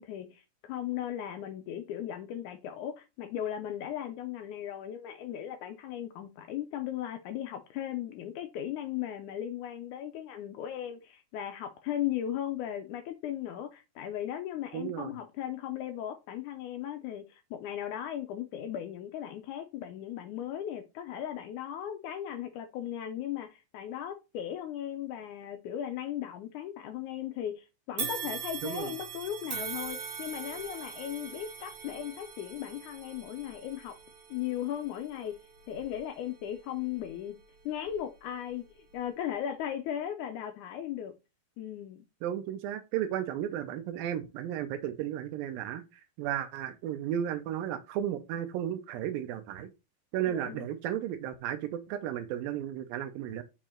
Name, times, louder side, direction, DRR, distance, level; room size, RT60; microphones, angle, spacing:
voice 1, 0.0-34.0 34.3-35.4 35.7-37.4 37.7-41.1 41.6-42.1 50.3-50.7, left 10 dB, 80° left, 1.8 m, -37 dB
voice 2, 14.7-15.1 28.6-28.9 42.2-45.8 46.2-49.7 50.1-53.4, right 11 dB, 85° right, 2.5 m, -34 dB
sound 1, 28.0-37.3 37.8-38.0 38.9-39.0, right 7 dB, 60° right, 2.3 m, -42 dB
5.8 x 4.6 x 4.3 m
omnidirectional pair, 4.0 m